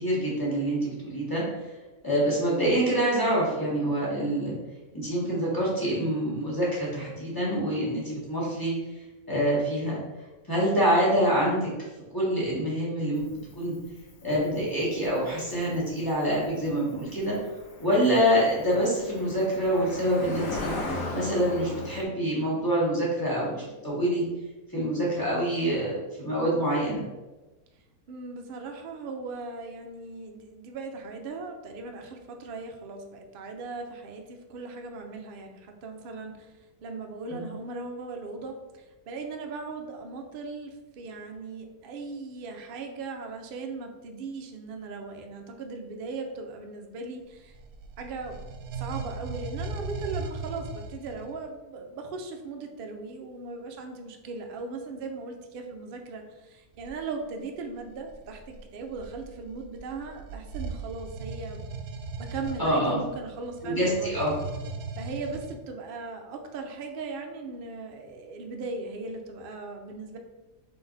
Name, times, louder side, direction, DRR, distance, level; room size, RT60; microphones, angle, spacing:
voice 1, 0.0-1.4 2.0-4.5 4.9-8.7 9.3-10.0 10.5-11.7 12.1-13.3 13.5-13.7 14.2-17.3 17.8-24.2 24.7-27.0 37.3-37.5 62.6-63.0 63.6-64.3, equal, 15° left, -7 dB, 1.4 m, -26 dB
Cricket, 13.2-22.0, left 2 dB, 65° left, 1.3 m, -38 dB
voice 2, 28.1-36.5 36.8-47.6 48.0-61.7 62.2-64.2 65.0-70.2, right 3 dB, 60° right, 3 dB, 0.6 m, -38 dB
sound 1, 47.3-51.4 56.7-57.0 57.8-65.5, right 4 dB, 80° right, 1.0 m, -38 dB
3.9 x 3.4 x 3.9 m, 1.1 s
omnidirectional pair, 1.6 m